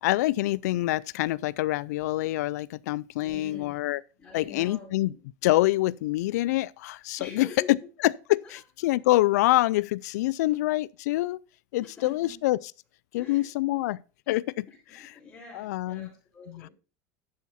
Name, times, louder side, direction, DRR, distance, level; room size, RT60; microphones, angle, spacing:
voice 1, 0.0-4.0 4.3-5.1 5.4-7.8 8.0-11.4 11.7-12.6 13.1-14.0 14.3-14.7 15.0-15.1 15.5-16.1 16.5-16.7, left 17 dB, 90° left, 0.4 m, -26 dB
voice 2, 3.2-3.8 4.2-5.2 7.2-7.7 8.4-8.5 8.8-8.9 10.4-10.5 11.8-12.4 13.1-13.8 14.9-16.7, left 4 dB, 20° left, 5.0 m, -46 dB
11.5 x 7.2 x 4.2 m
supercardioid pair, 135°, 9 cm